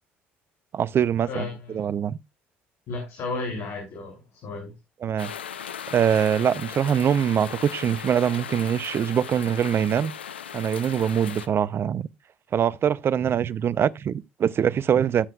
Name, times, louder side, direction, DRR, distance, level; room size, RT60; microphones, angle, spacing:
voice 1, 0.7-1.5 1.7-2.2 5.0-5.3 5.9-10.1 10.5-12.1 12.5-15.3, right 8 dB, 45° right, 0.5 m, -23 dB
voice 2, 1.2-1.9 2.9-4.7, left 3 dB, 60° left, 3.0 m, -33 dB
sound 1, 5.2-11.5, left 8 dB, 90° left, 0.5 m, -37 dB
14.5 x 7.7 x 2.3 m
hypercardioid pair, 55°, 6 cm